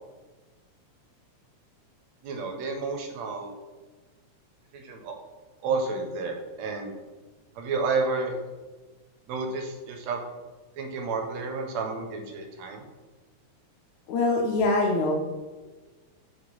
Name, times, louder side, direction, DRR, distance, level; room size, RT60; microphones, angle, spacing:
voice 1, 2.2-3.5 4.7-5.2 5.6-6.9 7.6-8.3 9.3-10.2 10.8-12.9, right 4 dB, 75° right, 3 dB, 1.9 m, -31 dB
voice 2, 14.1-15.1, left 2 dB, 75° left, -1 dB, 2.1 m, -23 dB
4.9 x 4.7 x 5.3 m, 1.3 s
omnidirectional pair, 3.4 m